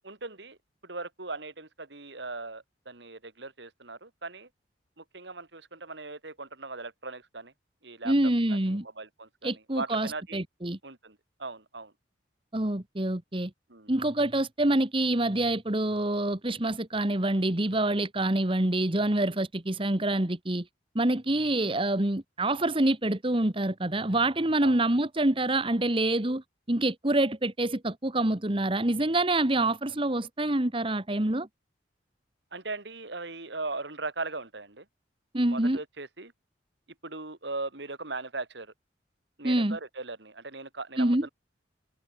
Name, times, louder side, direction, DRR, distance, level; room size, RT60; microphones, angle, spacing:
voice 1, 0.0-0.6 0.8-4.5 5.0-7.5 7.8-8.1 8.6-10.4 10.8-11.9 13.7-14.1 21.3-21.4 24.6-24.8 32.5-34.9 35.5-36.3 37.0-38.7 39.4-41.3, right 3 dB, 65° right, 2.6 m, -39 dB
voice 2, 8.0-8.8 9.4-10.8 12.5-13.5 13.9-20.6 20.9-26.4 26.7-31.5 35.3-35.8 39.4-39.8 41.0-41.3, right 1 dB, 30° right, 1.4 m, -26 dB
head